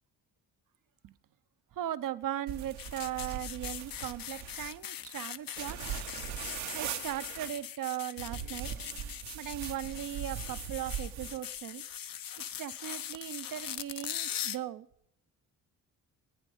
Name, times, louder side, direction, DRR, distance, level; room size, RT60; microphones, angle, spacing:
voice 1, 1.7-5.8 6.7-8.7 9.3-11.8 12.6-14.9, right 12 dB, 45° right, 16 dB, 0.7 m, -38 dB
sound 1, 2.5-4.8 5.6-7.5 8.2-11.4, right 8 dB, 75° right, 1.2 m, -40 dB
sound 2, 2.8-14.6, left 10 dB, 45° left, 0.7 m, -41 dB
17.0 x 9.8 x 5.3 m, 0.77 s
hypercardioid pair, 50°, 47 cm